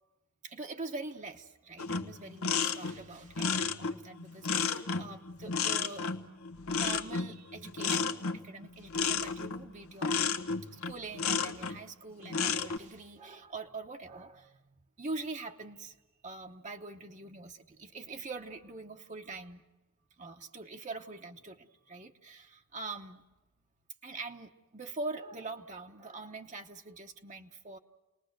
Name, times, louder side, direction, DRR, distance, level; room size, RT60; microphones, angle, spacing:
voice 1, 0.4-6.4 6.7-10.3 10.6-14.6 15.0-16.0 16.2-19.6 20.2-23.2 24.0-27.8, right 3 dB, 35° right, 3 dB, 1.0 m, -44 dB
sound 1, 1.8-11.8 12.2-12.8, left 5 dB, 80° left, 1.1 m, -32 dB
29.5 x 20.0 x 6.6 m, 1.1 s
head